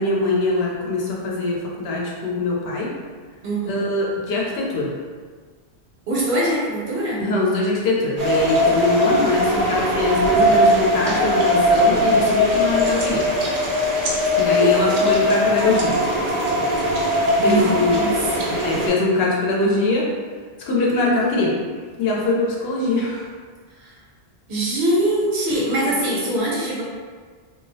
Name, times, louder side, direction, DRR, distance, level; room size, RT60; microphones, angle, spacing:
voice 1, 0.0-2.9 3.7-4.9 7.2-13.2 14.4-15.9 17.4-18.0 18.6-20.1 20.6-21.6 22.0-23.3 26.1-26.2, left 2 dB, 75° left, -3 dB, 0.8 m, -22 dB
voice 2, 3.4-3.8 6.1-7.2 14.5-15.1 17.4-18.6 23.8-24.0 24.5-26.8, right 1 dB, 85° right, -5 dB, 1.0 m, -23 dB
sound 1, 8.2-18.9, left 1 dB, 55° right, 0.4 m, -20 dB
2.3 x 2.0 x 2.6 m, 1.6 s
omnidirectional pair, 1.1 m